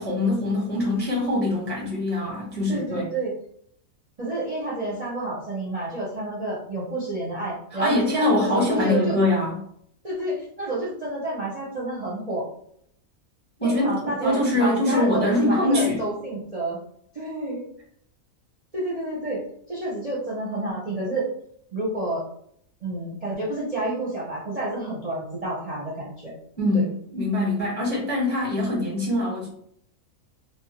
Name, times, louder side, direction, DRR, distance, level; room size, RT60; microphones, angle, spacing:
voice 1, 0.0-3.1 7.8-9.6 13.6-16.0 26.6-29.5, left 1 dB, 10° left, -4 dB, 0.6 m, -23 dB
voice 2, 2.7-3.3 4.2-9.2 10.0-12.5 13.6-16.8 17.1-17.7 18.7-19.4 19.7-21.3 21.7-22.2 22.8-26.3 26.7-26.8, right 2 dB, 40° right, -6 dB, 0.6 m, -29 dB
2.9 x 2.3 x 2.8 m, 0.67 s
omnidirectional pair, 1.5 m